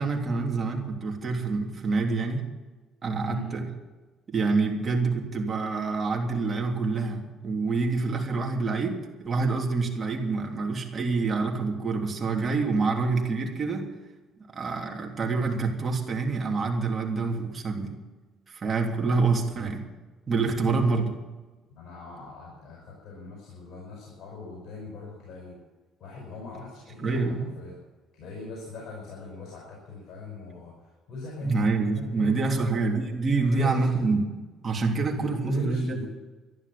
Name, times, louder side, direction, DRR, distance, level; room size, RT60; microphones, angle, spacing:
voice 1, 0.0-2.4 3.0-3.7 4.3-13.9 14.5-17.9 18.5-19.8 20.3-21.1 27.0-27.5 31.4-36.1, right 4 dB, 35° right, 1 dB, 3.2 m, -27 dB
voice 2, 3.2-3.5 20.5-21.0 21.7-25.6 26.0-27.8 28.1-30.7 31.1-32.9 33.4-34.1 35.1-36.1, left 2 dB, 60° left, -2 dB, 5.3 m, -39 dB
13.5 x 11.0 x 8.6 m, 1.2 s
cardioid pair, 95°, 0 cm